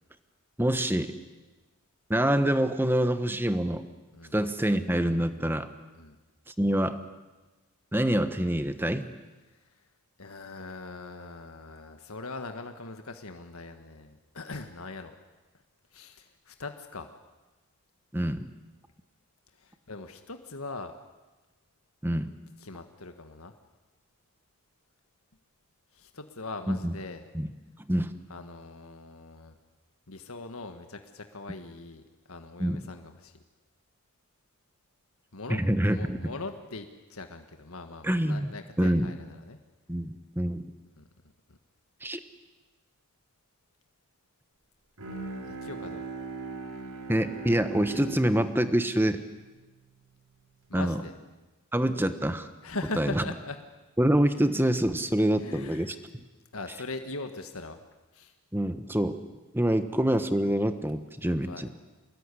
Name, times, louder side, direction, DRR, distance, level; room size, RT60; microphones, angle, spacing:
voice 1, 0.6-1.1 2.1-3.8 4.3-5.7 6.6-7.0 7.9-9.0 18.1-18.4 22.0-22.3 26.7-26.9 27.3-27.5 27.9-28.1 32.6-32.8 35.5-36.2 38.0-38.5 38.8-39.1 39.9-40.6 42.0-42.2 47.1-49.2 50.7-51.0 51.7-52.5 53.0-53.2 54.0-55.9 58.5-59.2 59.5-61.7, right 1 dB, 10° right, 10 dB, 1.2 m, -26 dB
voice 2, 10.2-15.1 15.9-17.1 19.6-20.9 22.6-23.5 25.9-27.2 28.3-29.5 30.1-32.0 32.3-33.3 35.3-39.6 41.0-41.1 41.5-41.6 45.5-46.1 50.7-51.1 52.6-53.6 55.2-56.0 56.5-57.8 58.1-58.3 61.4-61.7, left 3 dB, 70° left, 6 dB, 1.7 m, -41 dB
Bowed string instrument, 45.0-50.4, right 3 dB, 90° right, 4.4 m, -40 dB
25.5 x 20.5 x 9.9 m, 1.2 s
head